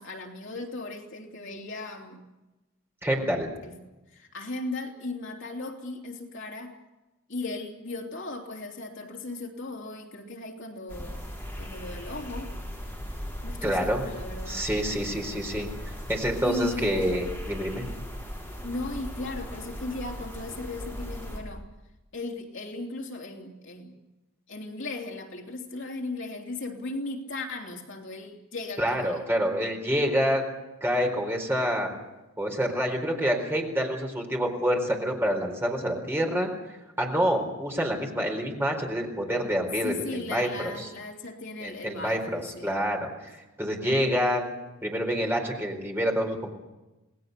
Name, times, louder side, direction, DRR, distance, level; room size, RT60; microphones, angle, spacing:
voice 1, 0.0-2.2 3.6-3.8 4.1-6.8 7.3-11.2 11.6-12.5 13.4-14.7 16.4-17.1 18.6-21.6 22.1-23.9 24.5-29.2 39.8-42.8, left 2 dB, 55° left, 1 dB, 3.2 m, -37 dB
voice 2, 3.0-3.5 13.6-14.0 14.5-17.9 28.8-30.4 30.8-31.9 32.4-40.9 41.6-44.5 44.8-46.5, equal, 10° right, 1 dB, 4.2 m, -27 dB
sound 1, 10.9-21.4, equal, 10° left, 6.6 m, -38 dB
28.5 x 19.5 x 6.8 m, 1.0 s
head